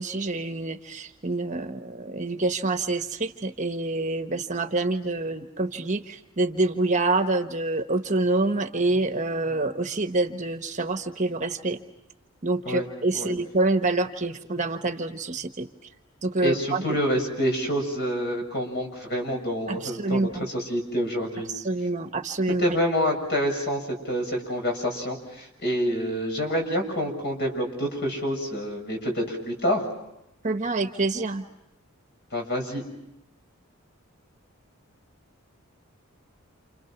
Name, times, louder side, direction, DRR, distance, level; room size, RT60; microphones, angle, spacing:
voice 1, 0.0-11.8 12.4-15.7 16.2-17.0 19.7-20.5 21.5-22.6 30.4-31.4, right 2 dB, 35° right, 6 dB, 1.2 m, -27 dB
voice 2, 16.4-21.5 22.6-29.9 32.3-32.8, equal, 50° left, 2 dB, 7.1 m, -27 dB
29.5 x 29.0 x 6.0 m, 0.86 s
head